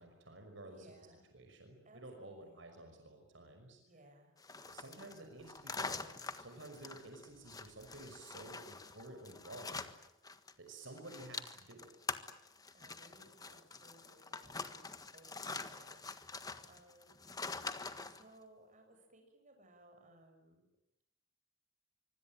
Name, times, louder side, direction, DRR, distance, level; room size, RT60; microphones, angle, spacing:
voice 1, 0.0-0.9 1.3-3.8 4.7-9.9 10.6-11.9, right 2 dB, 70° right, 4 dB, 5.7 m, -52 dB
voice 2, 0.6-1.3 1.8-2.6 3.8-4.3 12.7-17.2 18.0-20.7, right 1 dB, 40° right, 4 dB, 7.4 m, -63 dB
sound 1, 4.4-10.5 10.8-18.2, left 4 dB, 20° left, 1.5 m, -45 dB
25.0 x 25.0 x 9.1 m, 0.83 s
head